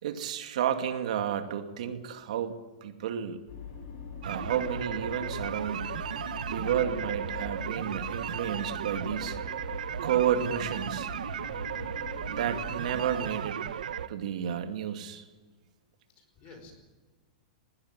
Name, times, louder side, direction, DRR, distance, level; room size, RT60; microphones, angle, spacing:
voice 1, 0.0-3.4 4.2-6.0 6.5-9.4 10.0-11.1 12.2-13.6 14.1-15.2, right 9 dB, 65° right, 7 dB, 2.4 m, -31 dB
sound 1, 3.5-13.4, left 6 dB, 50° left, 7.6 m, -43 dB
sound 2, 4.2-14.1, right 9 dB, 85° right, 1.1 m, -35 dB
voice 2, 11.5-11.9 16.2-16.7, left 3 dB, 30° left, 6 dB, 4.7 m, -52 dB
20.5 x 16.0 x 9.7 m, 1.3 s
supercardioid pair, 165°, 4 cm